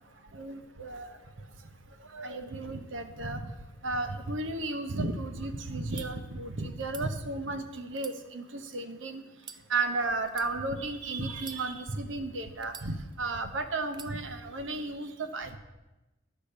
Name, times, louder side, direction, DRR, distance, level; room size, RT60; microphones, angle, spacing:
voice 1, 0.3-1.2 2.1-3.5 3.8-9.2 9.7-15.6, right 2 dB, 80° right, 8 dB, 0.9 m, -34 dB
sound 1, 5.9-6.1 6.8-7.1 7.9-8.8 9.4-9.6 10.3-10.5 11.3-12.0 12.6-13.3 13.9-14.1, right 6 dB, 25° right, 0.4 m, -46 dB
10.0 x 5.0 x 6.7 m, 1.0 s
head